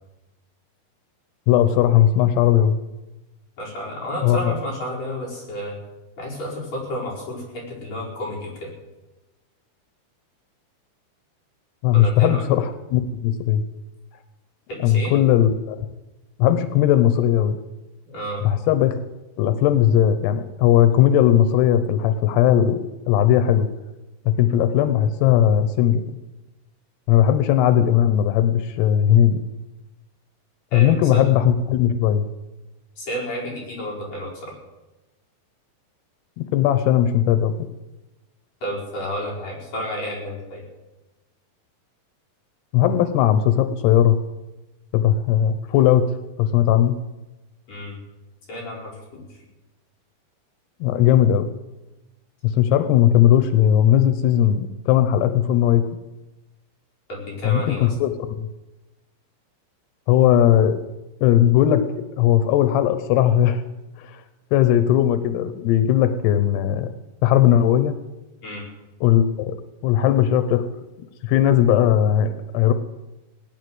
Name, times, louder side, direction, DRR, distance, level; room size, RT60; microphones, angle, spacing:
voice 1, 1.5-2.7 4.2-4.5 11.8-13.6 14.8-15.8 16.4-17.6 18.4-19.0 19.4-22.8 23.1-23.7 24.3-26.0 27.1-29.4 30.7-32.3 36.4-37.5 42.7-44.2 44.9-46.9 50.8-51.5 52.4-55.8 57.4-58.5 60.1-60.8 61.2-61.8 62.2-63.6 64.0-64.2 64.5-66.9 67.2-67.9 69.0-69.6 69.8-70.6 71.2-72.7, left 10 dB, 90° left, 11 dB, 3.0 m, -18 dB
voice 2, 3.6-5.8 6.2-8.7 11.9-12.4 14.7-15.1 18.1-18.5 30.7-31.2 33.0-34.6 38.6-40.6 47.7-48.0 48.5-49.4 57.1-57.9 68.4-68.7, equal, 45° left, -4 dB, 6.0 m, -31 dB
19.0 x 9.8 x 7.8 m, 1.0 s
omnidirectional pair, 4.6 m